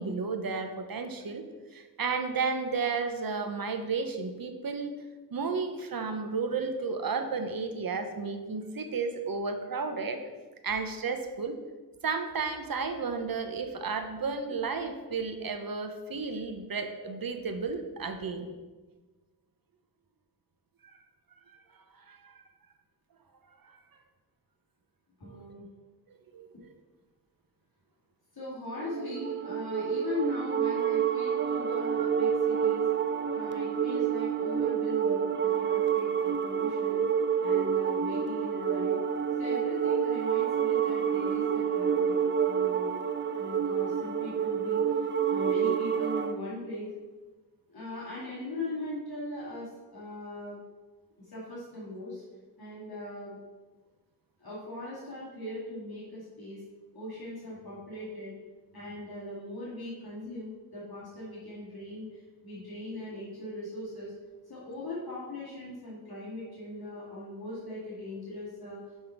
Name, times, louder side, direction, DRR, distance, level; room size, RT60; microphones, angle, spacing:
voice 1, 0.0-1.4 1.7-4.9 5.3-10.2 10.6-11.6 12.0-18.5 22.1-22.4 23.6-23.8 25.2-25.4 26.3-26.5, right 4 dB, 60° right, 7 dB, 0.8 m, -33 dB
voice 2, 25.2-25.6 28.3-32.8 33.3-37.0 37.4-39.0 39.4-42.2 42.4-42.9 43.4-46.9 47.7-50.6 51.2-52.2 52.6-53.4 54.4-56.6 56.9-58.3 58.7-64.1 64.5-68.8, left 2 dB, 70° left, -8 dB, 2.1 m, -40 dB
sound 1, 28.8-46.4, right 8 dB, 30° right, 0.4 m, -28 dB
5.6 x 5.5 x 4.5 m, 1.3 s
wide cardioid pair, 70°, 39 cm